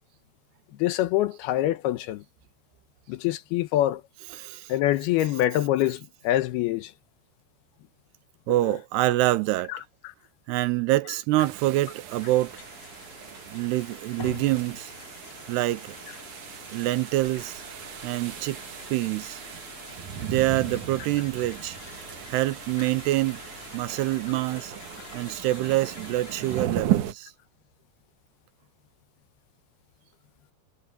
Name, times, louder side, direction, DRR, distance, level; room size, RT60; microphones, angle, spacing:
voice 1, 0.8-2.2 3.1-4.0 4.7-6.9, left 14 dB, 75° left, 2.7 m, -25 dB
voice 2, 4.3-4.8 8.5-9.7 10.5-12.5 13.5-14.9 15.5-16.0 16.7-17.6 18.0-18.6 18.9-19.4 20.2-21.8 22.3-23.4 23.7-24.7 25.1-27.3, right 17 dB, 85° right, 2.7 m, -26 dB
sound 1, 11.4-27.1, right 11 dB, 60° right, 2.2 m, -36 dB
sound 2, 12.1-26.7, left 5 dB, 40° left, 2.3 m, -46 dB
omnidirectional pair, 4.9 m